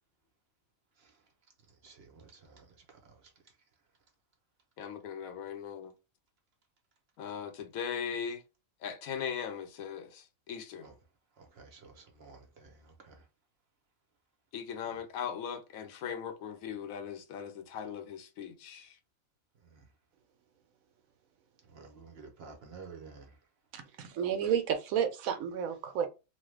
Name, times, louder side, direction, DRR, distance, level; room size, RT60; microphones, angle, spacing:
voice 1, 1.8-3.0 3.2-3.3 10.8-11.0 11.4-13.2 14.9-15.0 19.6-19.9 21.7-23.4, right 4 dB, 50° right, 0.9 m, -52 dB
voice 2, 4.8-5.9 7.2-8.4 8.8-10.9 14.5-18.9, left 7 dB, 80° left, 1.0 m, -39 dB
voice 3, 23.7-26.1, right 8 dB, 75° right, 1.0 m, -31 dB
3.0 x 2.2 x 3.2 m
omnidirectional pair, 1.5 m